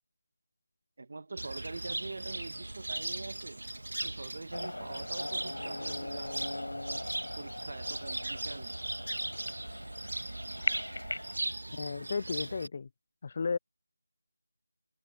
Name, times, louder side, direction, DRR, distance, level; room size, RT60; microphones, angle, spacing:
voice 1, 1.0-3.6 4.0-6.5 7.4-8.8, right 3 dB, 45° right, 1.5 m, -44 dB
Cricket, 1.4-12.7, right 2 dB, 90° right, 1.7 m, -38 dB
sound 1, 4.5-11.4, left 2 dB, 85° left, 4.8 m, -40 dB
voice 2, 11.7-12.9 13.2-13.6, left 5 dB, 30° left, 0.3 m, -34 dB
figure-of-eight pair, 175°, 0 cm